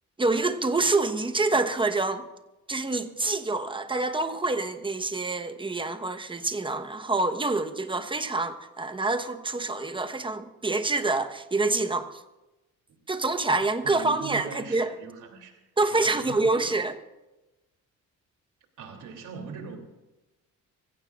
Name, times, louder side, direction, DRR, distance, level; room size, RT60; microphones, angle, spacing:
voice 1, 0.2-2.3 2.7-12.1 13.1-14.9 15.8-16.9, right 3 dB, 15° right, 1.1 m, -26 dB
voice 2, 13.8-16.7 18.8-19.8, right 5 dB, 75° right, 3.1 m, -41 dB
25.5 x 16.0 x 2.5 m
cardioid pair, 90°, 30 cm